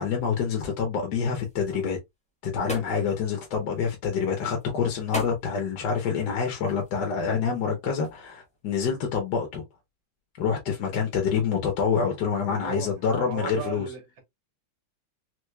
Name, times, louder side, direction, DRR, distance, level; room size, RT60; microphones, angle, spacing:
voice 1, 0.0-2.0 2.4-9.6 10.4-13.9, left 6 dB, 60° left, 1.3 m, -27 dB
sound 1, 1.3-9.1, left 1 dB, 5° left, 0.6 m, -42 dB
voice 2, 12.5-12.9 13.2-14.2, right 6 dB, 65° right, 1.9 m, -36 dB
4.6 x 2.4 x 2.2 m
omnidirectional pair, 2.3 m